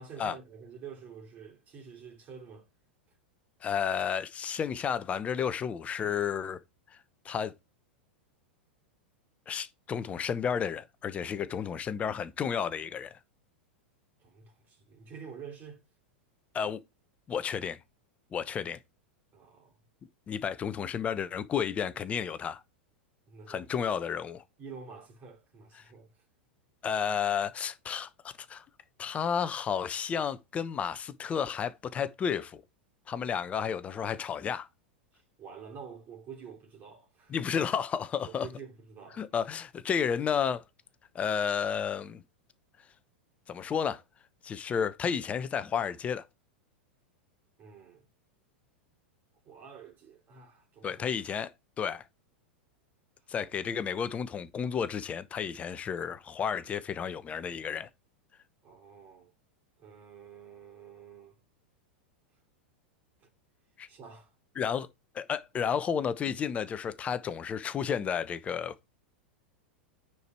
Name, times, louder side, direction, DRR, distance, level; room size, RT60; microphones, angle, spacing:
voice 1, 0.0-2.7 14.2-15.8 19.3-19.8 23.3-23.7 24.6-26.1 35.4-37.3 38.2-39.3 47.6-48.1 49.4-51.1 53.4-53.5 58.6-59.3 59.8-61.3 63.2-63.3 63.9-64.3, right 6 dB, 30° right, 3.0 m, -48 dB
voice 2, 3.6-6.6 6.9-7.0 7.2-7.5 9.5-13.2 16.5-16.8 17.3-17.8 18.3-18.8 20.3-22.6 23.5-24.4 25.8-25.9 26.8-28.6 29.0-32.6 33.1-34.7 37.3-38.5 39.1-40.6 41.1-42.2 43.5-44.0 44.4-46.3 50.8-51.5 51.8-52.0 53.3-57.9 63.8-63.9 64.6-64.9 65.1-68.7, left 7 dB, 20° left, 0.9 m, -32 dB
9.6 x 4.8 x 4.4 m
figure-of-eight pair, 90°, 6 cm